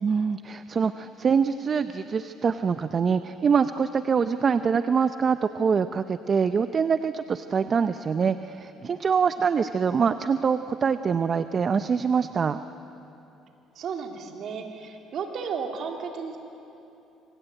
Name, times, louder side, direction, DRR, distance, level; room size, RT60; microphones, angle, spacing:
voice 1, 0.0-12.6, right 6 dB, 35° right, 11 dB, 0.7 m, -24 dB
voice 2, 13.7-16.4, right 6 dB, 55° right, 3 dB, 3.3 m, -33 dB
26.5 x 24.0 x 9.1 m, 2.9 s
cardioid pair, 110°, 0 cm